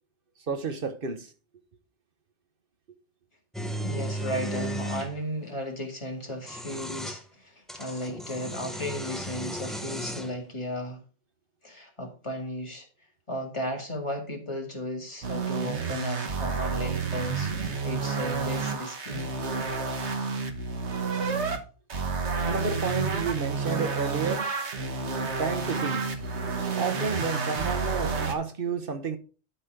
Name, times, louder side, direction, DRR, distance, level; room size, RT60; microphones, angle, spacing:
voice 1, 0.5-1.3 22.4-24.5 25.4-26.1 26.7-29.2, right 5 dB, 55° right, 1.1 m, -31 dB
sound 1, 3.5-5.1 6.3-7.2 7.7-10.4, equal, ahead, 0.7 m, -35 dB
voice 2, 3.8-11.0 11.6-12.9 13.3-19.3, equal, 25° left, 2.1 m, -35 dB
sound 2, 15.2-21.6 21.9-28.3, right 4 dB, 90° right, 1.5 m, -30 dB
12.0 x 4.1 x 5.1 m
omnidirectional pair, 1.1 m